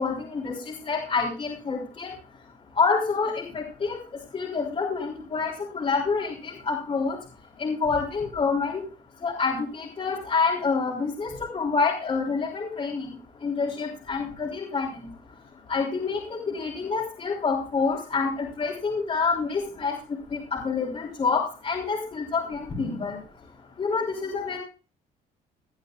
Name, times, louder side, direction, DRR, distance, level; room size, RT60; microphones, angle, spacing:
voice 1, 0.0-2.1 2.8-4.0 4.3-7.2 7.6-8.8 9.2-13.1 13.4-14.9 15.7-19.9 20.3-23.2 23.8-24.6, left 4 dB, 35° left, -4 dB, 3.7 m, -27 dB
18.5 x 10.5 x 2.4 m, 0.37 s
cardioid pair, 110°, 17 cm